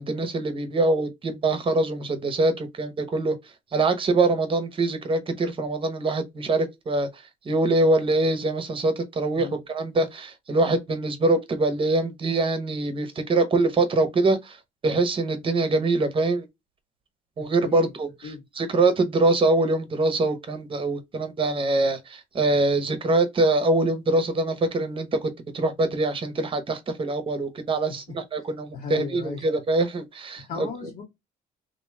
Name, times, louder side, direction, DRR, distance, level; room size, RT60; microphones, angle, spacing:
voice 1, 0.0-3.3 3.7-7.1 7.5-14.6 14.8-16.5 17.4-30.7, right 2 dB, 30° right, 0.9 m, -24 dB
voice 2, 17.4-17.9 18.2-18.4 27.9-28.0 28.7-29.4 30.5-31.0, left 5 dB, 65° left, 1.6 m, -36 dB
3.0 x 2.7 x 3.3 m
cardioid pair, 110°, 17 cm